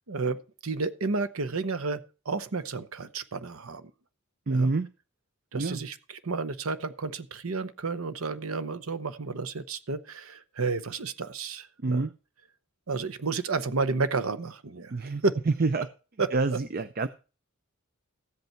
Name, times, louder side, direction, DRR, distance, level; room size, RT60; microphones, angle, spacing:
voice 1, 0.1-2.0 2.3-3.9 4.5-4.7 5.5-6.0 6.2-12.0 12.9-15.4 16.2-16.3, right 4 dB, 85° right, 0.9 m, -31 dB
voice 2, 4.5-4.9 5.5-5.8 11.8-12.1 14.9-15.9 16.3-17.1, right 3 dB, 45° right, 0.5 m, -27 dB
14.5 x 8.1 x 4.5 m
head